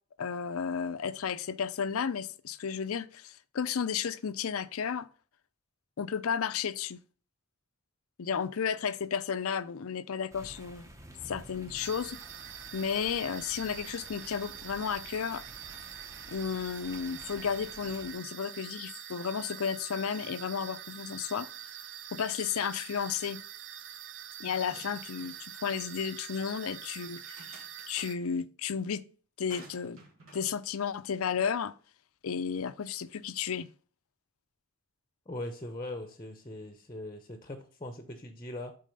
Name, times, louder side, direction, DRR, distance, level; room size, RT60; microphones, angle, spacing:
voice 1, 0.2-5.1 6.0-7.0 8.2-10.9 11.2-12.2 12.7-15.4 16.3-21.5 22.1-23.4 24.4-29.0 29.4-30.0 30.3-31.7 32.2-33.7, left 7 dB, 75° left, 0.5 m, -33 dB
sound 1, 10.3-18.1, right 1 dB, 15° right, 0.8 m, -51 dB
sound 2, 11.8-28.2, right 10 dB, 55° right, 0.5 m, -45 dB
sound 3, 24.4-25.5 25.8-25.9 27.0-28.1 29.5-30.5, right 2 dB, 70° right, 2.1 m, -53 dB
voice 2, 35.3-38.8, left 1 dB, 20° left, 0.8 m, -40 dB
7.6 x 4.1 x 5.3 m
head